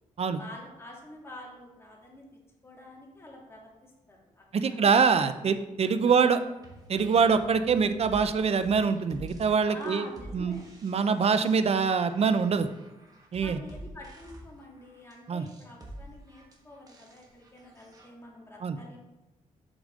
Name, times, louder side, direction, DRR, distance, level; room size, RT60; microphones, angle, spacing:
voice 1, 0.4-2.2 2.6-4.9 5.8-5.9 9.6-10.7 13.4-19.0, left 1 dB, 20° left, -3 dB, 2.3 m, -47 dB
voice 2, 4.5-6.4 6.9-10.1 10.3-10.6 10.8-12.7 13.3-13.6 15.3-15.5 18.6-18.8, right 5 dB, 50° right, 10 dB, 0.6 m, -24 dB
sound 1, 6.1-18.1, right 1 dB, 25° right, 1.5 m, -48 dB
7.3 x 5.0 x 3.7 m, 1.0 s
cardioid pair, 75°, 14 cm